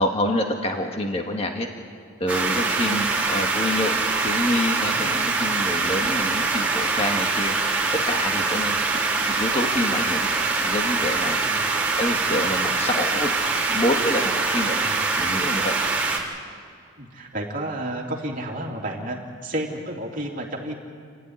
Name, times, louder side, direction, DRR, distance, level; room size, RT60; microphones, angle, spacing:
voice 1, 0.0-1.7 2.2-7.6 8.0-8.8 9.3-10.3 10.6-11.4 12.0-13.3 13.7-14.8 15.2-15.8, left 1 dB, 30° left, 2 dB, 1.7 m, -27 dB
sound 1, 2.3-16.2, right 3 dB, 5° right, 3.7 m, -24 dB
voice 2, 2.5-3.1 5.0-5.3 11.4-11.6 14.8-15.0 17.0-20.7, right 1 dB, 40° right, -1 dB, 3.2 m, -32 dB
29.5 x 13.5 x 9.7 m, 2.3 s
head